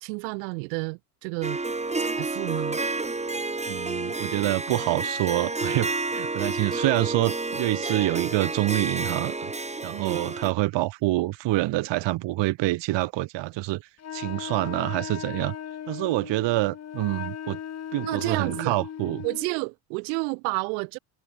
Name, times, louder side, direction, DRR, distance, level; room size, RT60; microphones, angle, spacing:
voice 1, 0.0-1.6 2.0-2.8 4.7-4.8 9.9-10.2 18.0-18.8 19.2-21.0, right 37 dB, 85° right, 1.3 m, -30 dB
Harp, 1.4-10.5, right 3 dB, 15° right, 2.0 m, -30 dB
voice 2, 3.7-9.5 9.8-13.8 14.1-15.5 15.9-17.6 17.9-19.2, right 18 dB, 60° right, 1.0 m, -26 dB
Wind instrument woodwind instrument, 14.0-19.5, left 9 dB, 30° left, 0.8 m, -37 dB
supercardioid pair, 75°, 49 cm